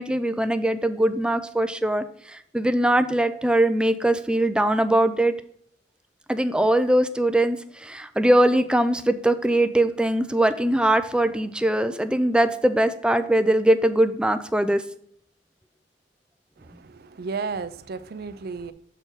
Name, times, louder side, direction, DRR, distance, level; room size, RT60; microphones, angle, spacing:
voice 1, 0.0-5.4 6.3-14.8, right 1 dB, 5° right, 0.4 m, -21 dB
voice 2, 16.6-18.7, right 4 dB, 60° right, 0.5 m, -33 dB
7.4 x 4.5 x 4.8 m
head